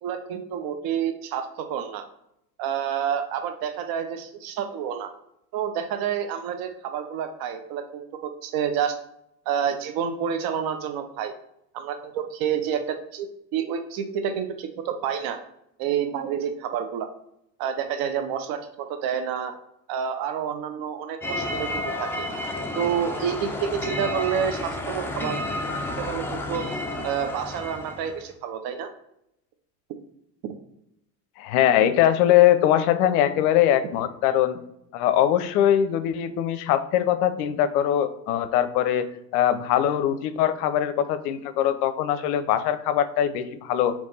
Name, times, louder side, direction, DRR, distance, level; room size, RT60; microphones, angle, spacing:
voice 1, 0.0-2.0 2.6-5.1 5.5-9.0 9.5-11.3 11.7-15.4 15.8-17.1 17.6-19.5 19.9-22.3 22.8-25.4 26.0-26.7 27.0-28.9 30.4-30.5, right 8 dB, 45° right, 7 dB, 0.6 m, -29 dB
sound 1, 21.2-28.3, left 1 dB, 5° left, 0.3 m, -31 dB
voice 2, 31.4-34.6 34.9-39.1 39.3-43.9, left 11 dB, 65° left, 12 dB, 0.6 m, -22 dB
3.4 x 3.0 x 4.0 m, 0.80 s
hypercardioid pair, 80°, 48 cm